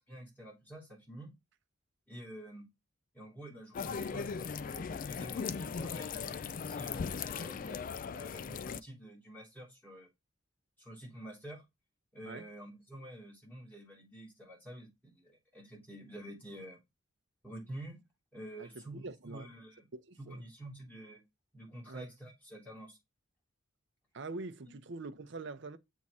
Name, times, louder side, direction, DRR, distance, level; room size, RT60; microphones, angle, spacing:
voice 1, 0.1-1.3 2.1-2.7 3.1-10.1 10.8-11.6 12.1-16.8 17.4-18.0 18.3-19.9 20.2-21.2 21.5-23.0 24.7-24.8, right 1 dB, 10° left, 3.5 m, -49 dB
sound 1, 3.7-8.8, left 6 dB, 45° left, 0.3 m, -38 dB
voice 2, 18.6-19.5 19.9-20.4 21.9-22.1 24.1-25.8, right 3 dB, 65° right, 0.7 m, -44 dB
7.3 x 3.7 x 4.2 m
head